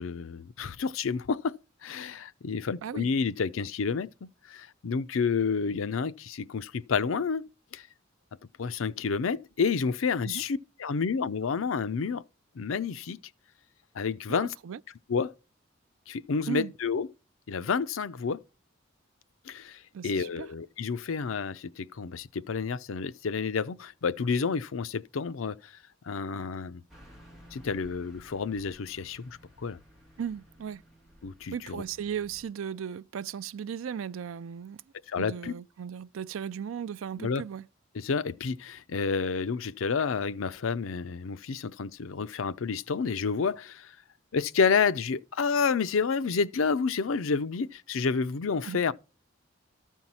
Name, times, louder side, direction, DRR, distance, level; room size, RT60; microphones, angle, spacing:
voice 1, 0.0-1.6 1.8-4.1 4.5-7.9 8.6-12.2 12.6-13.2 13.9-14.5 15.1-15.3 16.1-17.1 17.5-18.4 19.5-25.7 26.1-26.8 27.5-29.8 31.2-31.8 35.1-35.5 37.2-37.4 37.9-43.9 44.3-48.9, left 5 dB, 85° left, 0.5 m, -30 dB
voice 2, 14.3-14.8 16.5-16.7 19.9-20.5 30.2-30.8 31.5-34.8 35.2-37.6 48.6-48.8, right 8 dB, 85° right, 0.4 m, -36 dB
Car passing by / Truck, 26.9-32.4, equal, ahead, 3.1 m, -55 dB
13.5 x 4.5 x 5.5 m
head